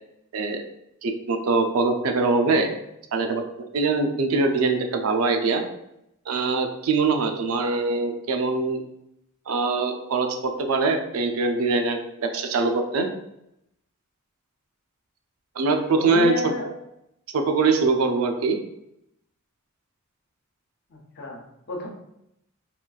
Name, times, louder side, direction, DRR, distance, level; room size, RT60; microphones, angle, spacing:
voice 1, 0.3-0.6 1.0-2.7 3.1-5.6 6.3-8.8 9.5-13.1 15.6-16.5 17.3-18.6, right 3 dB, 80° right, 5 dB, 0.4 m, -23 dB
voice 2, 15.9-16.7 20.9-21.4 21.7-21.9, left 1 dB, 55° left, 0 dB, 0.7 m, -31 dB
3.7 x 2.4 x 2.3 m, 0.81 s
head